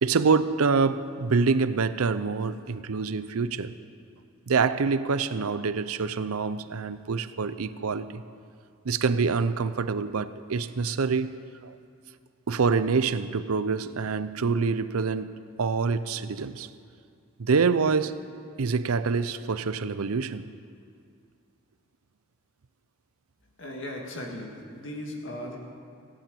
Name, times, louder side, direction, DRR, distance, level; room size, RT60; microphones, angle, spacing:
voice 1, 0.0-3.7 4.5-8.2 8.8-11.4 11.6-11.8 12.5-15.3 15.6-16.7 17.4-18.2 18.6-20.5, right 5 dB, 90° right, 14 dB, 0.6 m, -26 dB
voice 2, 23.6-25.6, left 1 dB, 60° left, 0 dB, 2.2 m, -37 dB
16.5 x 9.0 x 8.4 m, 2.3 s
head